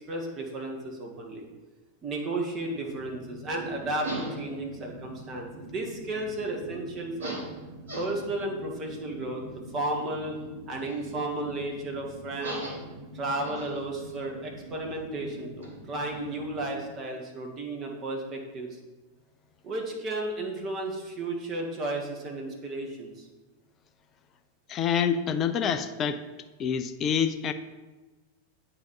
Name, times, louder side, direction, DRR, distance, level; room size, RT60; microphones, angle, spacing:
voice 1, 0.0-1.5 2.0-7.4 7.9-10.3 10.7-12.6 13.1-18.8 19.6-23.3, right 2 dB, 30° right, 0 dB, 1.4 m, -33 dB
sound 1, 2.6-16.9, right 1 dB, 65° right, 1.6 m, -42 dB
voice 2, 24.7-26.2 26.6-27.5, left 7 dB, 30° left, 9 dB, 0.4 m, -27 dB
8.7 x 3.0 x 5.4 m, 1.2 s
figure-of-eight pair, 90°, 0 cm